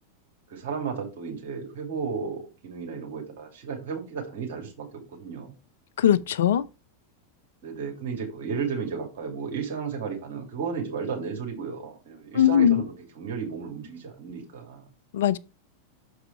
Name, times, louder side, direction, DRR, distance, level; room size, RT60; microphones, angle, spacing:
voice 1, 0.5-5.5 7.6-14.8, right 5 dB, 50° right, 2.6 m, -33 dB
voice 2, 6.0-6.6 12.4-12.8 15.1-15.4, left 10 dB, 60° left, 0.4 m, -20 dB
6.6 x 4.7 x 4.6 m
figure-of-eight pair, 90°, 0 cm